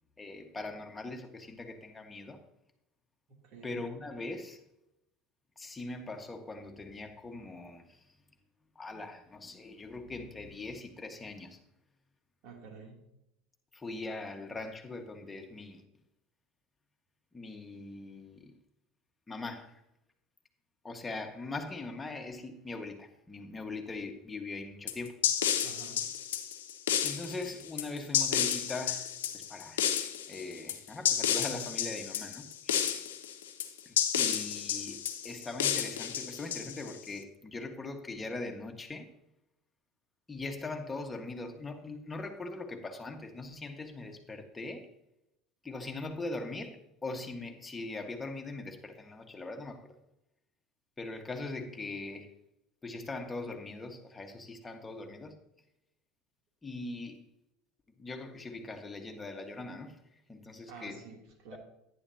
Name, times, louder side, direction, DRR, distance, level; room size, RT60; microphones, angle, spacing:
voice 1, 0.2-2.4 3.6-4.6 5.6-8.1 8.7-11.6 13.7-15.8 17.3-18.6 19.3-19.8 20.8-25.2 27.0-29.9 30.3-32.9 33.8-39.1 40.3-44.9 45.6-49.9 51.0-52.3 52.8-55.3 56.6-57.3 58.0-61.1 61.5-61.6, left 2 dB, 15° left, 1.6 m, -41 dB
voice 2, 3.3-3.8 12.4-13.0 25.6-26.1 60.7-61.6, right 4 dB, 60° right, 2.9 m, -49 dB
sound 1, 24.9-37.1, left 9 dB, 85° left, 0.8 m, -31 dB
10.5 x 10.5 x 2.9 m
hypercardioid pair, 85°, 0 cm